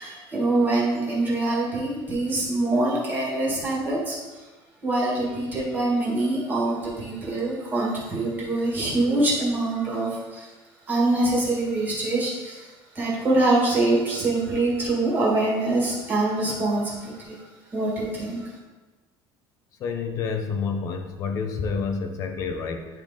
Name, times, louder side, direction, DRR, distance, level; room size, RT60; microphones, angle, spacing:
voice 1, 0.0-4.4 4.8-10.5 10.9-18.5, right 2 dB, 20° right, -5 dB, 1.7 m, -24 dB
voice 2, 19.8-22.9, left 5 dB, 35° left, 6 dB, 0.7 m, -28 dB
10.0 x 3.9 x 3.6 m, 1.2 s
cardioid pair, 180°, 9 cm